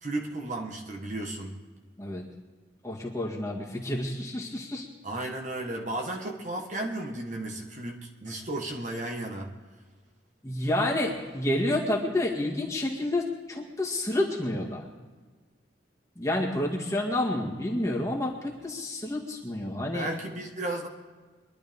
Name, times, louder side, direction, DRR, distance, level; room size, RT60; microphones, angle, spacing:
voice 1, 0.0-1.5 5.0-9.5 19.9-20.9, right 2 dB, 40° right, 1 dB, 1.4 m, -34 dB
voice 2, 2.8-4.9 10.4-14.8 16.2-20.1, left 1 dB, 15° left, -2 dB, 1.9 m, -29 dB
23.0 x 12.0 x 3.6 m, 1.4 s
head